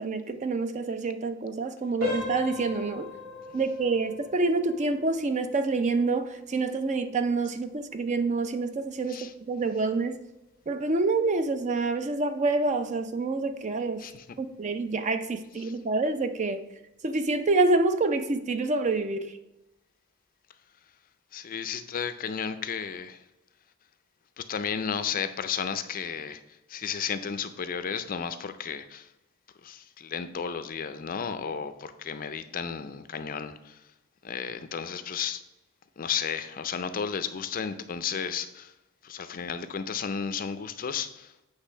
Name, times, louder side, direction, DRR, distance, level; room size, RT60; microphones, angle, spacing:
voice 1, 0.0-3.1 3.5-10.2 10.7-14.1 14.4-16.6 17.0-19.3, right 3 dB, 35° right, 9 dB, 0.5 m, -27 dB
sound 1, 2.0-12.7 13.0-13.3 13.8-13.9 14.4-14.6, left 3 dB, 50° right, 2.7 m, -41 dB
voice 2, 21.3-23.2 24.4-26.4 26.7-29.1 29.6-33.8 34.2-35.4 36.0-38.7 39.0-41.3, left 7 dB, 40° left, 11 dB, 0.4 m, -33 dB
8.2 x 3.3 x 5.5 m, 0.95 s
head